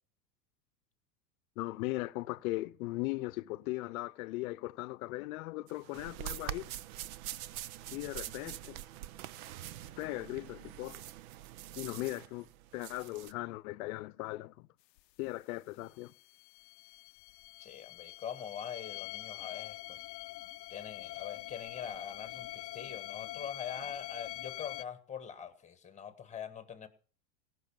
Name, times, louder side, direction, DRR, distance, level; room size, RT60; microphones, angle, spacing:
voice 1, 1.6-6.7 7.9-8.8 10.0-11.0 11.8-14.7 15.2-16.1, left 20 dB, 60° left, 0.8 m, -38 dB
sound 1, 5.7-13.3, right 13 dB, 60° right, 0.8 m, -44 dB
sound 2, 15.0-15.1 15.3-15.4 15.8-24.8, left 18 dB, 85° left, 0.6 m, -45 dB
voice 2, 17.6-20.0 20.7-26.9, left 8 dB, 15° left, 1.6 m, -43 dB
17.5 x 6.5 x 7.1 m
hypercardioid pair, 120°, 49 cm